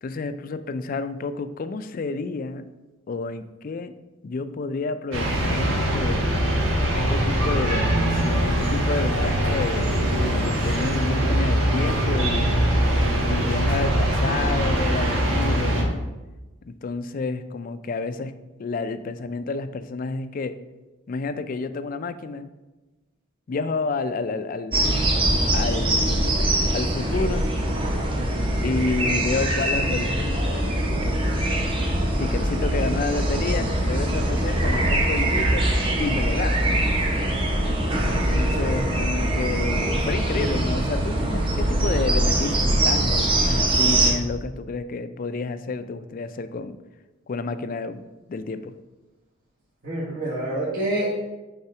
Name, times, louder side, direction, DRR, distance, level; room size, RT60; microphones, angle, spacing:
voice 1, 0.0-2.6 3.1-3.9 4.2-6.3 6.9-12.6 13.3-16.0 16.7-18.3 18.6-20.5 21.1-22.5 23.5-25.0 25.5-26.5 26.7-27.5 28.6-35.6 36.0-36.7 38.0-46.8 47.3-48.0 48.3-48.7, left 3 dB, 45° left, 11 dB, 0.3 m, -30 dB
sound 1, 5.1-15.8, right 1 dB, 75° right, 1.2 m, -22 dB
sound 2, 24.7-44.1, right 1 dB, 25° right, 0.8 m, -23 dB
sound 3, 30.2-35.3, equal, 5° left, 0.7 m, -34 dB
voice 2, 38.1-38.7 49.8-51.2, right 1 dB, 50° right, -9 dB, 1.4 m, -28 dB
5.5 x 4.1 x 4.7 m, 1.1 s
head